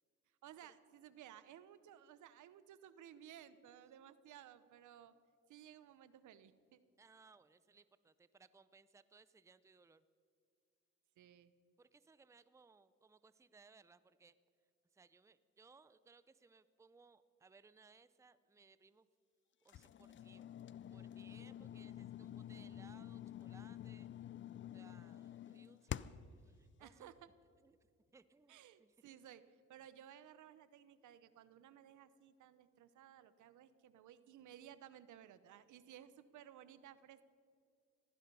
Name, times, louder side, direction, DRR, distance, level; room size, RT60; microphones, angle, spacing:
voice 1, 0.4-5.1 5.5-6.8 11.2-11.5 26.8-27.3 28.5-29.4 29.7-37.2, right 10 dB, 75° right, 15 dB, 0.9 m, -58 dB
voice 2, 7.0-10.0 11.8-14.4 14.9-19.1 19.6-24.3 24.7-27.1 27.6-27.8 28.1-29.2, right 4 dB, 10° right, 16 dB, 0.5 m, -66 dB
sound 1, 19.7-26.4, left 10 dB, 40° left, 0.4 m, -49 dB
17.0 x 14.5 x 5.5 m, 2.3 s
cardioid pair, 90°, 30 cm